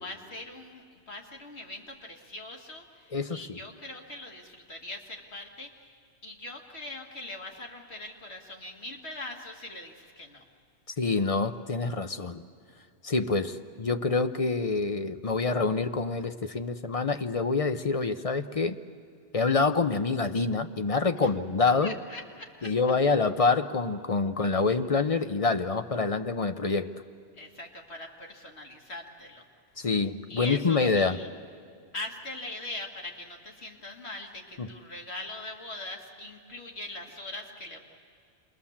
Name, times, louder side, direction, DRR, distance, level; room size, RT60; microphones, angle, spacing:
voice 1, 0.0-5.9 6.2-10.4 21.2-21.3 21.8-22.7 24.7-24.8 27.4-29.5 30.3-31.3 31.9-37.8, left 2 dB, 70° left, 1 dB, 2.4 m, -41 dB
voice 2, 3.1-3.6 11.0-12.4 13.0-18.8 19.3-21.9 22.6-26.9 29.8-31.2 34.6-34.7, left 4 dB, 35° left, 8 dB, 0.7 m, -26 dB
28.0 x 21.5 x 7.3 m, 2.2 s
omnidirectional pair, 1.1 m